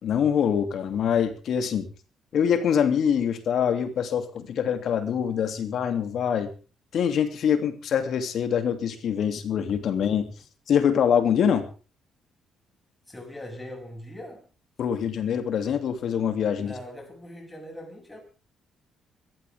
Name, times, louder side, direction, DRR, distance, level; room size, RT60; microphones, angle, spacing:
voice 1, 0.0-1.9 2.3-6.5 6.9-10.3 10.7-11.7 14.8-16.7, left 8 dB, 65° left, 2.9 m, -24 dB
voice 2, 13.1-14.5 16.6-18.2, left 1 dB, 10° left, 7.8 m, -41 dB
24.0 x 14.0 x 3.7 m
cardioid pair, 90°, 0 cm